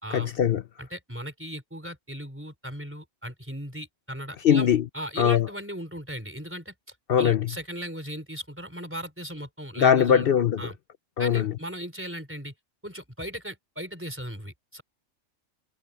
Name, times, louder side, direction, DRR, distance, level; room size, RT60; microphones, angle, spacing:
voice 1, 0.1-0.6 4.4-4.8 5.2-5.5 7.1-7.5 9.8-10.6 11.2-11.5, left 8 dB, 60° left, 0.7 m, -21 dB
voice 2, 0.8-4.7 4.9-6.7 7.2-10.3 10.6-10.7 11.2-12.5 12.8-14.8, equal, 10° right, 4.2 m, -37 dB
omnidirectional pair, 1.4 m